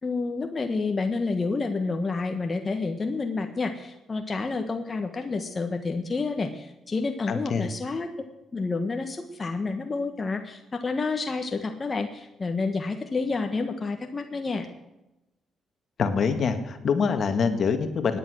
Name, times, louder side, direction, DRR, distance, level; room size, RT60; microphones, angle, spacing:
voice 1, 0.0-8.1 8.5-14.7, left 3 dB, 30° left, 5 dB, 1.4 m, -29 dB
voice 2, 7.3-7.7 16.0-18.2, left 5 dB, 55° left, 8 dB, 1.8 m, -25 dB
17.0 x 10.0 x 6.3 m, 0.95 s
cardioid pair, 90°, 0 cm